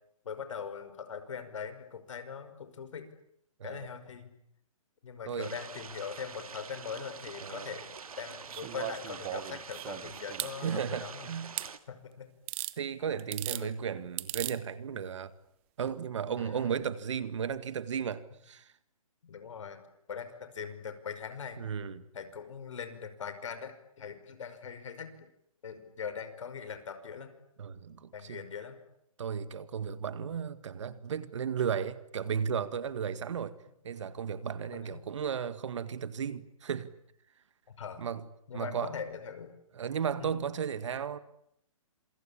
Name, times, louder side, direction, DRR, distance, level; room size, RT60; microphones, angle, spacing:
voice 1, 0.2-3.1 3.6-4.3 5.0-11.3 11.9-12.3 13.5-13.8 16.4-16.7 19.2-19.8 20.1-21.6 22.1-25.1 25.6-27.3 28.1-28.8 34.7-35.0 37.8-38.0 38.5-39.5 40.2-40.5, left 6 dB, 60° left, 5.7 m, -41 dB
sound 1, 5.4-11.8, right 6 dB, 80° right, 2.4 m, -46 dB
voice 2, 7.4-7.7 10.6-11.6 12.8-15.3 15.8-18.7 21.6-22.0 27.6-28.4 29.2-33.6 33.8-36.9 38.0-38.2 38.5-38.9 39.8-41.2, right 7 dB, 55° right, 2.0 m, -34 dB
sound 2, 8.5-10.5 11.6-11.7 12.5-12.8 13.2-13.6 14.2-14.6 15.8-15.9, right 18 dB, 20° right, 1.1 m, -37 dB
27.5 x 24.5 x 8.7 m
hypercardioid pair, 165°, 18 cm